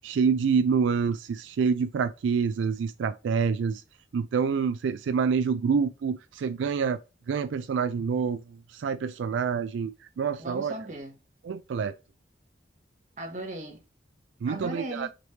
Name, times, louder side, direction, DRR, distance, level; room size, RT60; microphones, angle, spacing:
voice 1, 0.0-3.8 4.1-7.0 7.3-8.4 8.7-9.9 10.2-10.7 11.4-11.9 14.4-15.1, right 6 dB, 85° right, 0.3 m, -27 dB
voice 2, 10.4-11.2 13.2-13.8 14.5-15.1, right 1 dB, 40° right, 1.2 m, -37 dB
5.1 x 3.1 x 2.7 m
head